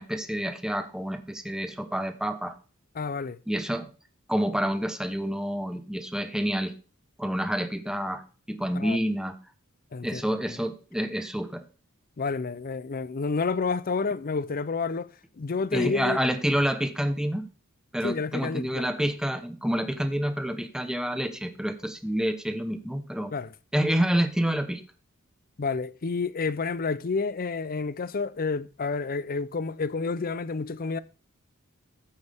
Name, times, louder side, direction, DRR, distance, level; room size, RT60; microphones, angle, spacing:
voice 1, 0.0-2.5 3.5-3.9 4.3-6.7 7.2-8.2 8.5-9.3 10.0-11.6 15.7-17.4 17.9-23.3 23.7-24.8, equal, 5° right, 1.0 m, -28 dB
voice 2, 2.9-3.4 8.7-9.0 9.9-10.2 12.2-15.1 15.4-16.2 18.0-18.8 23.3-23.5 25.6-31.0, left 4 dB, 45° left, 0.6 m, -29 dB
14.0 x 8.1 x 3.6 m
head